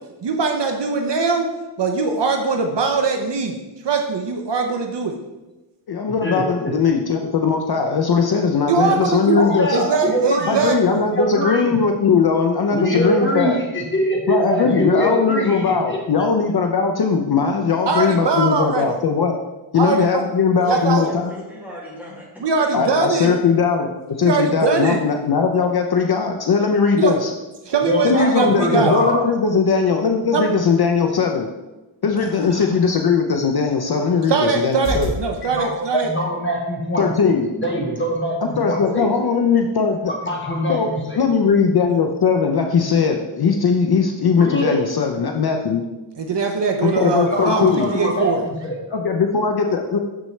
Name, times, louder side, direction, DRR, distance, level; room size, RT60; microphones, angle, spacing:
voice 1, 0.2-1.5 1.8-3.6 3.8-5.2 8.7-9.4 9.7-11.0 17.9-18.9 19.7-20.2 20.7-21.0 22.4-23.3 24.2-25.0 26.9-27.2 27.6-29.1 30.3-30.4 32.2-32.7 34.3-36.1 46.2-48.4, right 4 dB, 55° right, 3 dB, 0.7 m, -21 dB
voice 2, 5.9-9.8 10.5-13.6 14.3-19.3 19.7-21.3 22.7-27.3 28.0-31.5 32.0-35.1 37.0-37.5 38.6-40.1 40.7-45.8 46.8-47.9 48.9-50.0, left 5 dB, 50° left, 3 dB, 0.6 m, -19 dB
voice 3, 9.3-10.6 11.0-11.8 12.7-16.0 27.8-29.2 35.4-39.1 40.1-41.2 44.4-44.7 46.8-49.0, equal, 25° left, -1 dB, 1.3 m, -23 dB
voice 4, 20.6-22.7, left 1 dB, 5° right, -6 dB, 2.3 m, -37 dB
sound 1, 34.8-35.2 35.9-36.8 37.9-38.0 38.6-38.8 39.2-39.5 39.9-40.0, right 1 dB, 90° right, 2.0 m, -31 dB
6.7 x 6.2 x 3.2 m, 1.1 s
wide cardioid pair, 110°, 49 cm